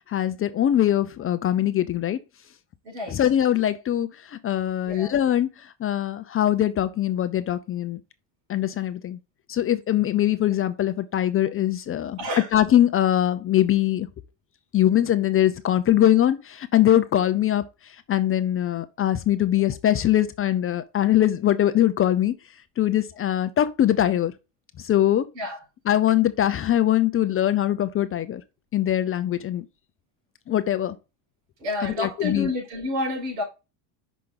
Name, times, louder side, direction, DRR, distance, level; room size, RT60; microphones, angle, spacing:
voice 1, 0.1-2.2 3.1-5.5 5.8-8.0 8.5-9.2 9.5-12.2 12.5-14.1 14.7-17.6 18.1-22.3 22.8-24.3 24.9-25.2 25.9-28.4 28.7-29.6 30.5-30.9 31.8-32.5, left 12 dB, 30° left, 0.5 m, -22 dB
voice 2, 2.8-3.2 4.9-5.1 12.2-12.5 25.3-25.6 31.6-33.4, left 2 dB, 80° right, 4.6 m, -29 dB
5.8 x 5.1 x 3.8 m
supercardioid pair, 105°, 49 cm